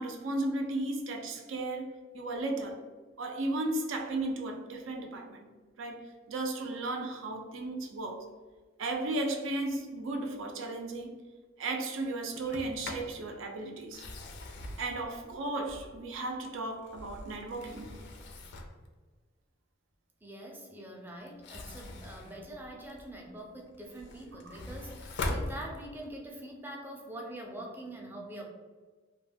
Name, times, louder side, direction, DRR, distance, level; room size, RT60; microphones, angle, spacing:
voice 1, 0.0-2.8 3.2-5.5 5.8-8.3 8.8-11.2 11.6-14.0 14.8-17.9 24.4-24.5, right 2 dB, 75° right, 0.5 m, -35 dB
Sliding door, 12.4-13.2 13.8-16.2 16.7-18.9 21.3-23.2 23.7-26.2, left 2 dB, 60° left, 0.4 m, -41 dB
voice 2, 20.2-28.4, right 1 dB, 10° right, 0.5 m, -44 dB
2.3 x 2.2 x 3.3 m
head